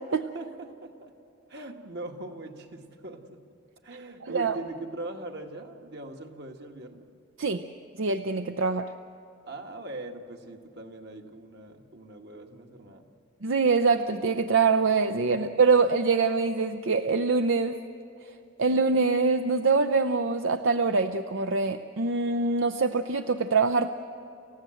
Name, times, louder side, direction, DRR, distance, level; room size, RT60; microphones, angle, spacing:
voice 1, 0.1-1.1 1.5-3.4 3.8-7.0 9.5-13.1 15.3-15.4, right 2 dB, 55° right, 4 dB, 1.7 m, -41 dB
voice 2, 4.2-4.5 7.4-7.6 8.0-8.9 13.4-17.8 18.2-18.3 18.6-23.9, right 4 dB, 75° right, 9 dB, 0.6 m, -24 dB
29.0 x 15.5 x 7.8 m, 2.8 s
head